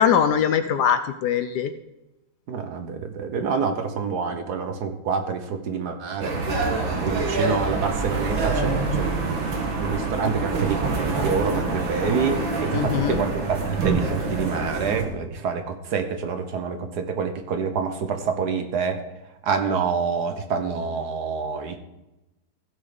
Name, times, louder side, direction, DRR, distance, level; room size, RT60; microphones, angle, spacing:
voice 1, 0.0-1.7 12.7-13.2, left 8 dB, 70° left, 10 dB, 1.1 m, -21 dB
voice 2, 2.5-6.4 7.0-19.0 19.4-21.8, right 5 dB, 60° right, 7 dB, 1.4 m, -27 dB
sound 1, 6.2-15.0, right 3 dB, 85° right, 2.4 m, -26 dB
15.5 x 6.2 x 5.1 m, 0.97 s
omnidirectional pair, 2.1 m